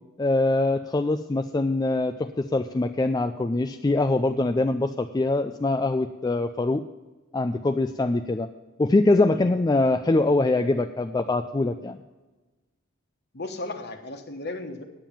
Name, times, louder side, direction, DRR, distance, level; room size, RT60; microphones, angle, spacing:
voice 1, 0.2-6.8 7.3-8.5 8.8-12.0, left 2 dB, 20° left, 7 dB, 0.3 m, -23 dB
voice 2, 13.3-14.8, left 2 dB, 50° left, 6 dB, 1.3 m, -35 dB
9.0 x 8.9 x 7.3 m, 1.2 s
head